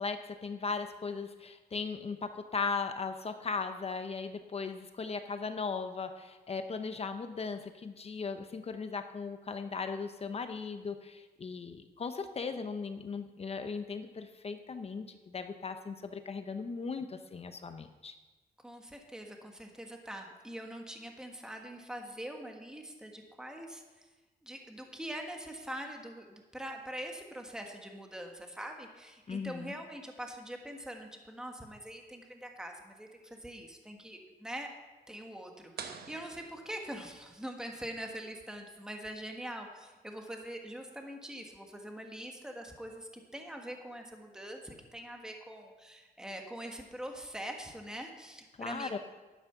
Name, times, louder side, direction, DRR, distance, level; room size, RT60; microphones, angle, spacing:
voice 1, 0.0-18.2 29.3-29.7 48.6-49.0, left 5 dB, 35° left, 8 dB, 0.7 m, -38 dB
voice 2, 18.6-24.0 24.4-34.7 35.1-49.0, right 1 dB, 5° right, 3 dB, 1.4 m, -43 dB
sound 1, 35.8-37.4, right 6 dB, 65° right, 1.0 m, -47 dB
11.5 x 8.7 x 5.8 m, 1.2 s
cardioid pair, 125°, 17 cm